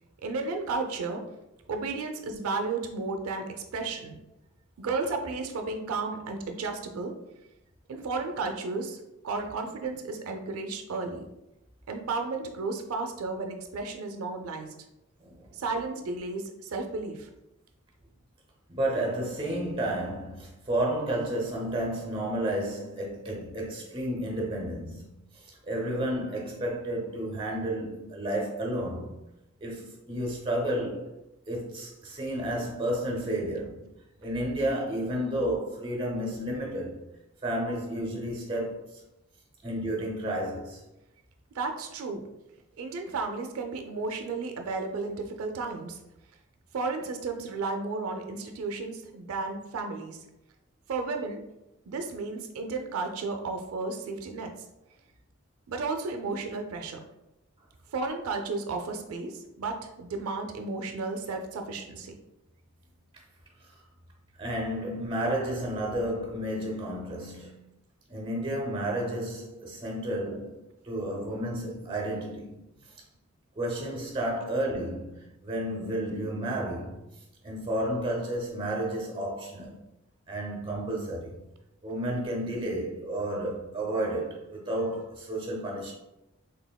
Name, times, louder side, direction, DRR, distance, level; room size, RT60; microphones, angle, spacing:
voice 1, 0.2-1.2 1.7-4.2 4.8-7.1 7.9-9.0 9.2-11.2 11.9-14.7 15.6-17.3 41.5-42.2 42.8-46.0 46.7-50.2 50.9-51.4 51.9-54.5 55.7-57.0 57.9-62.2, right 3 dB, 90° right, 0.4 m, -33 dB
voice 2, 15.2-15.6 18.7-29.2 29.6-31.1 31.5-33.9 34.2-37.0 37.4-39.0 39.6-40.8 63.6-63.7 64.4-67.6 68.1-72.6 73.6-77.0 77.4-79.8 80.3-81.4 81.8-85.9, right 1 dB, 25° right, 0.7 m, -31 dB
4.1 x 3.3 x 2.2 m
head